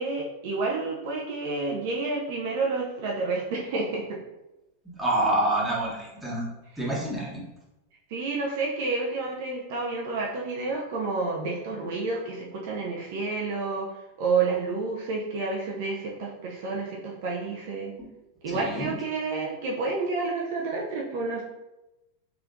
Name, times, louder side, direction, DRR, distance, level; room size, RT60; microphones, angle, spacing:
voice 1, 0.0-4.2 6.7-6.8 8.1-13.9 14.2-17.9 18.4-21.4, right 3 dB, 50° right, -2 dB, 0.5 m, -29 dB
voice 2, 5.0-6.4 6.8-7.4 18.5-18.9, right 1 dB, 5° right, -6 dB, 1.2 m, -27 dB
3.6 x 3.3 x 2.5 m, 0.97 s
figure-of-eight pair, 90°, 0 cm